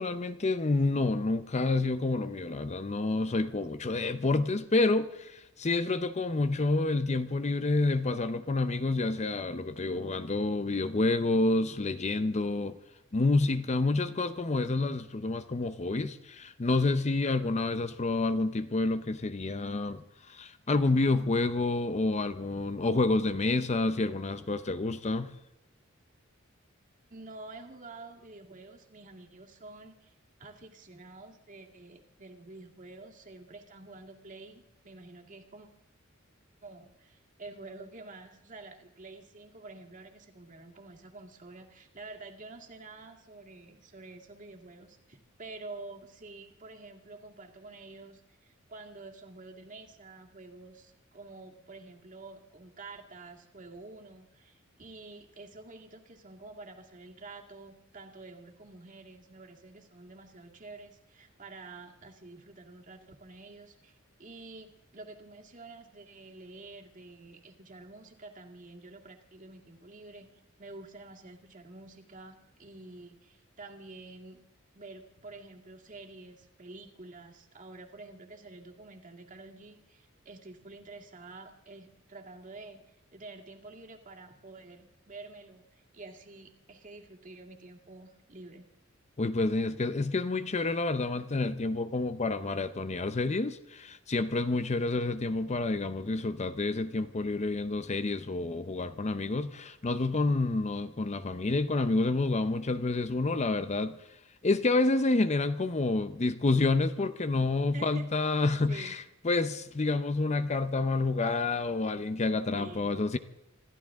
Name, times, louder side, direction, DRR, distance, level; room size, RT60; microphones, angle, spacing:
voice 1, 0.0-12.8 13.1-20.0 20.3-25.3 89.2-104.0 104.4-113.2, left 3 dB, 35° left, 0.6 m, -28 dB
voice 2, 27.1-30.1 30.4-35.7 36.6-74.4 74.7-88.7 107.7-108.1 108.3-108.9 112.5-113.0, right 3 dB, 40° right, 2.1 m, -49 dB
26.5 x 14.0 x 3.6 m
head